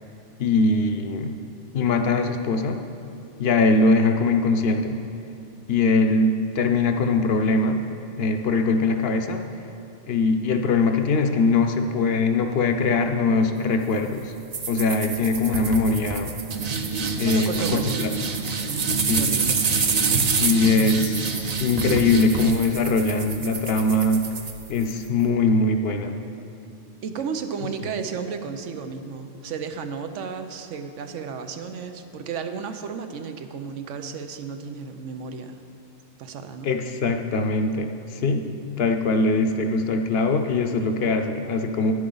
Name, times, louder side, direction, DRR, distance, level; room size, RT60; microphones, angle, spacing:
voice 1, 0.4-1.3 1.7-2.8 3.4-5.0 5.7-7.9 8.2-9.4 10.1-14.3 14.7-16.3 17.2-18.1 19.0-19.3 20.4-24.3 24.7-26.2 36.6-38.5 38.8-41.9, left 3 dB, 60° left, 6 dB, 0.8 m, -22 dB
sound 1, 14.5-25.1, right 5 dB, 45° right, 0.6 m, -26 dB
voice 2, 17.2-18.0 18.7-19.6 27.0-35.6 36.2-36.7, right 5 dB, 90° right, 8 dB, 1.0 m, -33 dB
10.5 x 10.0 x 3.9 m, 2.8 s
omnidirectional pair, 1.2 m